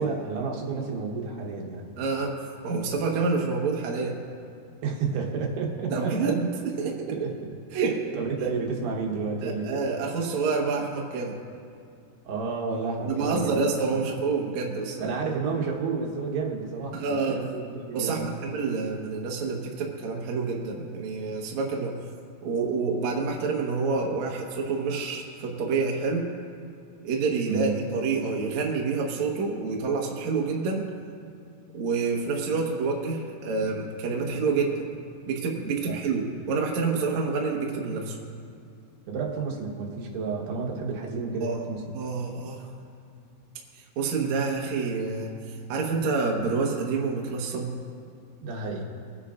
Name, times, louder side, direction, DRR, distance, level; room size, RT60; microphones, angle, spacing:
voice 1, 0.0-1.9 4.8-6.1 7.1-7.3 7.9-9.9 12.2-13.7 15.0-18.3 27.5-27.7 35.9-36.0 39.1-41.9 48.4-48.8, right 4 dB, 75° right, -1 dB, 3.4 m, -31 dB
voice 2, 2.0-2.3 2.6-4.1 5.9-7.3 7.7-8.2 9.4-11.4 13.0-15.2 16.9-17.4 17.9-21.9 22.4-26.3 27.0-30.9 31.7-34.8 35.3-38.2 41.4-41.6 41.9-42.7 44.0-45.3 45.7-47.7, right 4 dB, 60° right, 0 dB, 2.0 m, -28 dB
23.5 x 9.7 x 2.5 m, 2.4 s
omnidirectional pair, 4.8 m